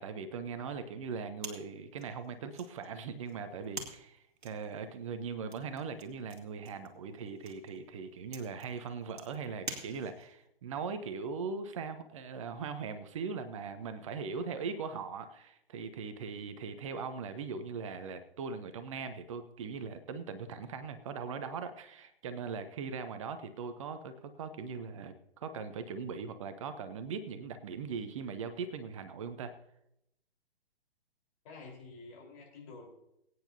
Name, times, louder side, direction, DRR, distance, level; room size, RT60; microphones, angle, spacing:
voice 1, 0.0-29.5, right 5 dB, 30° right, 10 dB, 0.9 m, -40 dB
sound 1, 1.4-10.4, right 4 dB, 50° right, 2.3 m, -48 dB
voice 2, 31.4-33.0, left 3 dB, 35° left, -2 dB, 4.2 m, -49 dB
22.0 x 9.5 x 2.8 m, 0.80 s
figure-of-eight pair, 130°, 30 cm